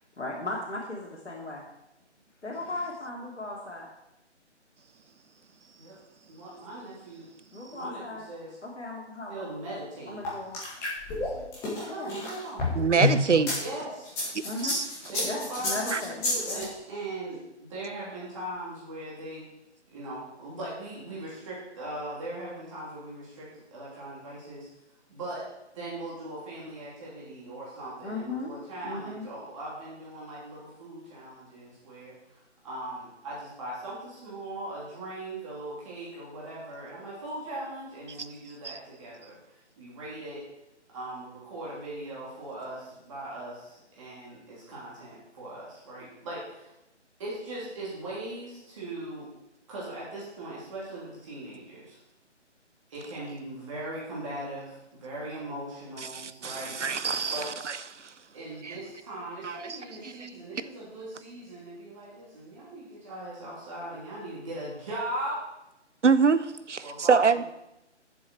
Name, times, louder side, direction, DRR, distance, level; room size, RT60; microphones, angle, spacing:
voice 1, 0.2-1.6 2.4-3.9 7.5-8.3 8.6-9.5 10.0-10.9 11.9-12.1 14.4-16.7 28.0-28.5 28.8-29.3, left 2 dB, 70° left, 2.6 m, -37 dB
voice 2, 6.3-7.3 7.6-8.6 9.3-10.2 11.2-11.4 11.7-13.2 13.5-14.2 15.1-19.5 19.9-24.7 25.1-25.5 25.7-39.4 39.8-40.4 40.9-46.7 47.2-49.3 49.7-52.0 52.9-57.5 58.3-65.4 66.8-67.4, right 1 dB, 25° right, 3.2 m, -39 dB
sound 1, 10.2-13.6 14.0-16.6, left 2 dB, 5° left, 1.8 m, -29 dB
voice 3, 12.8-13.5 14.6-14.8 15.9-16.0 38.6-38.8 56.0-57.4 58.0-58.1 58.6-58.7 59.4-59.8 60.2-60.3 66.0-67.4, right 5 dB, 80° right, 0.8 m, -25 dB
10.5 x 7.1 x 4.6 m
figure-of-eight pair, 155°, 36 cm